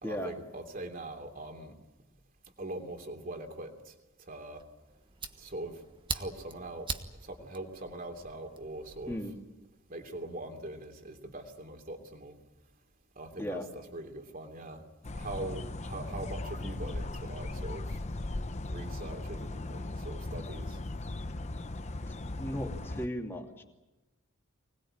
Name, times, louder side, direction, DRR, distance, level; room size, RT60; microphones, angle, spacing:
voice 1, 0.0-1.7 2.6-3.9 4.3-4.6 5.4-5.8 6.1-6.9 7.2-9.2 9.9-12.3 13.2-14.8 15.1-18.0 18.7-20.8, right 2 dB, 40° right, 4 dB, 3.0 m, -42 dB
Fire, 4.6-9.2, right 4 dB, 25° right, 1.4 m, -42 dB
sound 1, 15.0-23.1, left 2 dB, 35° left, 0.8 m, -38 dB
voice 2, 22.4-23.6, equal, 10° left, 1 dB, 2.8 m, -36 dB
25.0 x 20.0 x 8.9 m, 1.0 s
head